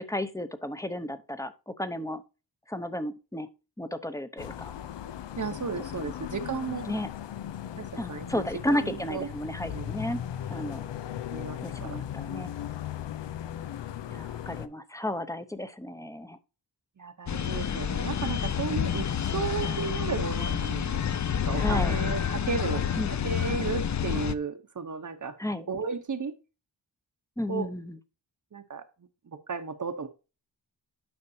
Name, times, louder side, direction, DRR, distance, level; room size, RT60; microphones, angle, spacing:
voice 1, 0.0-2.2 2.7-3.5 3.8-4.7 6.0-6.1 6.9-7.1 7.9-10.2 10.5-10.8 11.6-12.5 14.1-16.4 21.6-22.0 23.0-23.3 25.4-25.7 27.4-28.0, left 1 dB, 10° left, 0.7 m, -33 dB
sound 1, 4.4-14.7, left 10 dB, 90° left, 0.6 m, -37 dB
voice 2, 5.4-6.9 7.8-8.4 8.7-9.3 9.6-9.9 11.3-12.0 17.0-21.0 21.3-22.8 23.2-25.4 25.7-26.3 27.5-27.7 28.5-28.8 29.3-30.1, right 5 dB, 45° right, 0.8 m, -34 dB
sound 2, 17.3-24.3, left 8 dB, 45° left, 0.5 m, -29 dB
9.7 x 5.8 x 2.7 m
wide cardioid pair, 110°, 42 cm